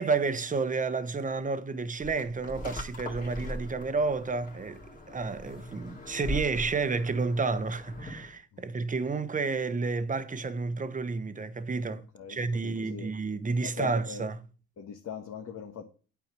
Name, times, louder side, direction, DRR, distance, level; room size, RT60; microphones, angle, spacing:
voice 1, 0.0-4.8 5.1-14.4, right 4 dB, 25° right, 1.0 m, -30 dB
sound 1, 2.0-8.4, equal, 25° left, 2.2 m, -40 dB
voice 2, 12.1-13.1 13.6-14.3 14.8-15.9, left 7 dB, 60° left, 1.5 m, -41 dB
9.1 x 4.8 x 7.5 m
cardioid pair, 90°, 30 cm